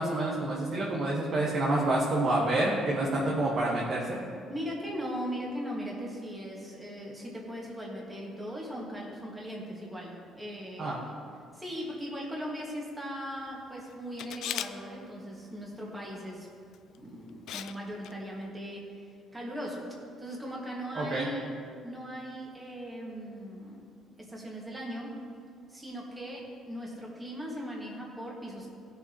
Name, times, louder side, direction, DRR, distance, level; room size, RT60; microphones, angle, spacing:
voice 1, 0.0-4.2 10.8-11.0 20.9-21.3, right 2 dB, 40° right, -4 dB, 1.4 m, -28 dB
voice 2, 4.5-11.0 11.5-16.5 16.9-18.9 19.3-21.5 21.8-23.8 24.2-25.2 25.7-28.7, equal, 10° right, -3 dB, 1.9 m, -39 dB
Camera, 14.2-14.7 16.7-17.0 17.5-17.8 18.0-18.1, left 11 dB, 70° left, 0.4 m, -36 dB
18.0 x 6.9 x 3.1 m, 2.3 s
cardioid pair, 150°, 0 cm